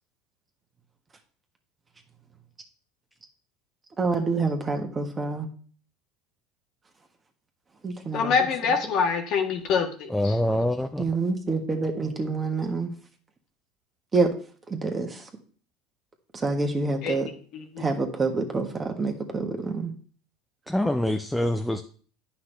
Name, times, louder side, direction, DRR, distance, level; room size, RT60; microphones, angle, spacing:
voice 1, 4.0-5.5 7.8-8.3 11.0-12.9 14.1-14.3 14.7-15.2 16.4-17.3 17.8-19.9, right 3 dB, 25° right, 3 dB, 1.5 m, -27 dB
voice 2, 8.1-10.4 17.0-17.2 17.5-17.8, left 6 dB, 55° left, 4 dB, 1.4 m, -25 dB
voice 3, 10.1-11.1 20.7-21.8, left 1 dB, 5° left, 6 dB, 0.5 m, -25 dB
9.6 x 5.8 x 3.4 m, 0.43 s
supercardioid pair, 105°, 0 cm